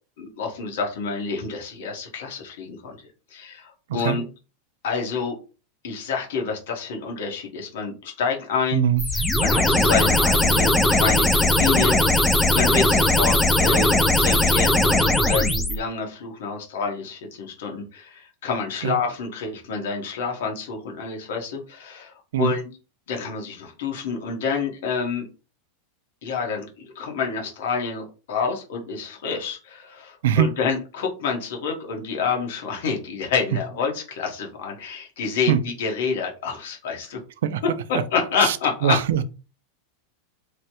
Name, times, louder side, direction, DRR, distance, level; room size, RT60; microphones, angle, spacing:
voice 1, 0.2-3.0 3.3-4.2 4.8-5.3 5.8-8.8 9.4-22.6 23.1-25.3 26.2-37.2 37.9-39.0, left 5 dB, 75° left, 1.1 m, -28 dB
voice 2, 8.7-9.0 18.8-19.0 22.3-22.6 30.2-30.5 35.5-35.6 37.4-37.6 37.9-38.0 38.4-38.6 38.8-39.2, right 9 dB, 80° right, 0.3 m, -21 dB
sound 1, 9.0-15.8, left 1 dB, 5° left, 0.3 m, -19 dB
3.1 x 2.1 x 2.8 m
supercardioid pair, 155°, 0 cm